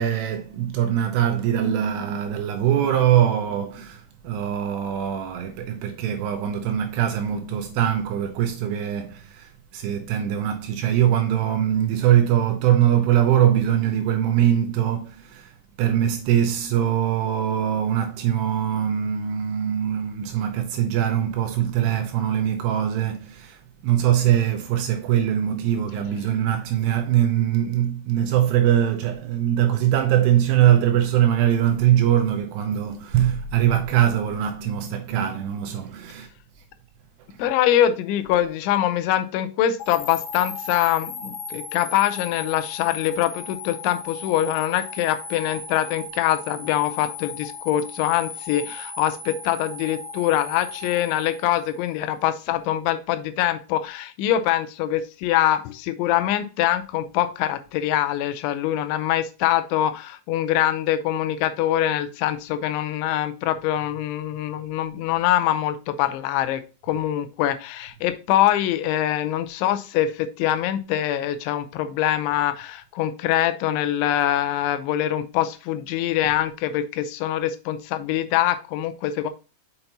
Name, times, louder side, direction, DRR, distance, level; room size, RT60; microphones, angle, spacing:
voice 1, 0.0-15.5 15.8-36.3, right 10 dB, 80° right, 2.5 m, -22 dB
voice 2, 37.4-79.3, left 12 dB, 90° left, 3.0 m, -24 dB
sound 1, 39.8-52.0, left 4 dB, 65° left, 2.0 m, -37 dB
6.6 x 5.8 x 2.8 m
omnidirectional pair, 5.3 m